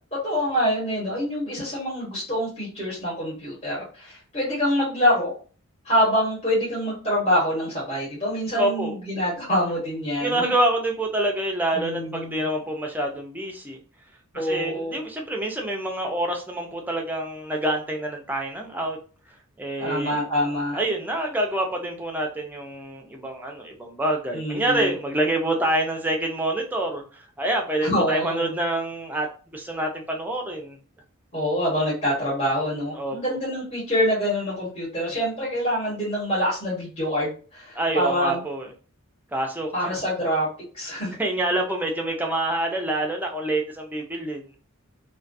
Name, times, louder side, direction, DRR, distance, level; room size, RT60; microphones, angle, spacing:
voice 1, 0.0-5.4 5.8-10.4 11.7-12.5 14.3-15.0 19.8-20.8 24.3-24.9 27.8-28.5 31.3-38.4 39.7-40.5 40.7-41.1, equal, 30° left, -7 dB, 1.2 m, -25 dB
voice 2, 8.6-9.0 10.2-13.8 14.3-19.0 19.6-20.2 20.7-29.3 29.5-30.8 32.9-33.2 37.7-38.7 39.3-40.0 41.2-44.5, right 1 dB, 10° right, 1 dB, 0.4 m, -26 dB
2.3 x 2.3 x 2.5 m, 0.38 s
head